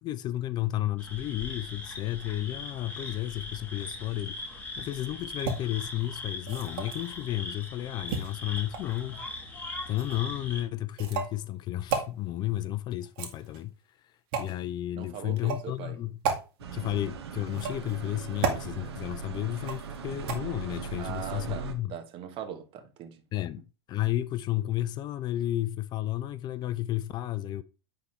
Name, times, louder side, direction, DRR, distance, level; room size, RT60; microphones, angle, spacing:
voice 1, 0.0-9.4 9.9-13.7 14.4-16.2 16.7-21.9 23.3-23.6 23.9-27.6, left 14 dB, 30° left, 0.4 m, -32 dB
sound 1, 1.0-10.6, left 2 dB, 10° left, 1.9 m, -40 dB
sound 2, 5.4-5.6 6.4-7.1 8.1-9.0 10.0-10.2 11.0-11.4 11.9-12.1 13.0-13.7 14.3-14.5 15.4-15.7 16.2-16.4 17.5-17.9 18.4-18.6 19.6-20.0 20.3-20.4, right 6 dB, 55° right, 1.9 m, -32 dB
voice 2, 15.0-16.0 21.0-23.2, right 8 dB, 40° right, 1.4 m, -40 dB
sound 3, 16.6-21.7, right 5 dB, 75° right, 1.2 m, -39 dB
9.5 x 3.7 x 3.3 m
hypercardioid pair, 110°, 14 cm